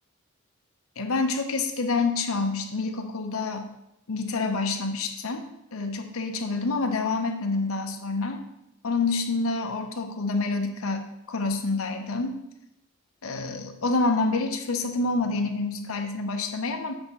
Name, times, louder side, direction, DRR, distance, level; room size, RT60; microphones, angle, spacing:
voice 1, 1.0-3.7 4.1-5.4 5.7-8.4 8.8-12.4 13.2-16.9, left 3 dB, 80° left, 4 dB, 0.8 m, -27 dB
7.8 x 3.6 x 5.5 m, 0.83 s
head